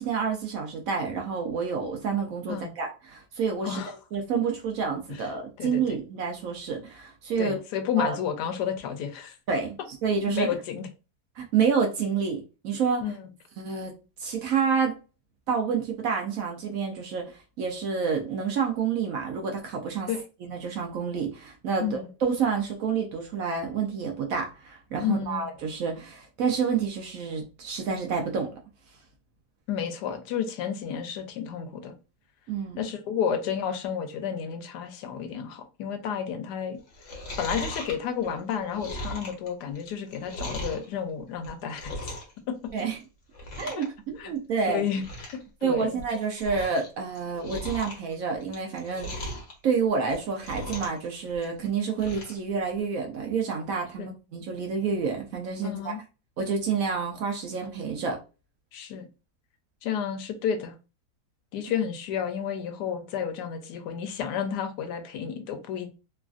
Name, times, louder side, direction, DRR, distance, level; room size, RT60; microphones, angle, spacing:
voice 1, 0.0-3.8 4.1-7.6 8.0-8.2 9.5-9.8 10.0-10.5 11.4-13.1 13.6-13.9 14.2-15.0 15.5-20.1 20.4-28.5 32.5-32.8 42.7-43.0 43.6-44.8 45.6-49.3 49.6-56.0 56.4-58.2, right 6 dB, 65° right, 0.9 m, -28 dB
voice 2, 5.6-6.0 7.4-9.4 10.3-10.9 13.0-13.3 20.1-20.2 21.8-22.1 25.0-25.5 29.7-31.9 32.8-36.8 37.4-42.1 42.5-42.6 43.8-43.9 44.2-44.3 44.7-46.0 54.0-54.1 55.6-56.0 58.7-59.1 59.8-60.7 61.5-65.9, left 8 dB, 80° left, 1.2 m, -31 dB
Chewing mastication, 36.9-40.9 41.3-42.4 42.6-43.0 43.3-43.9 44.1-44.2 44.7-44.8 45.0-45.4 45.8-46.9 47.1-49.5 50.0-51.0 51.3-52.4 52.8-52.9, equal, 50° left, 1.1 m, -37 dB
3.2 x 2.4 x 2.4 m
omnidirectional pair, 1.8 m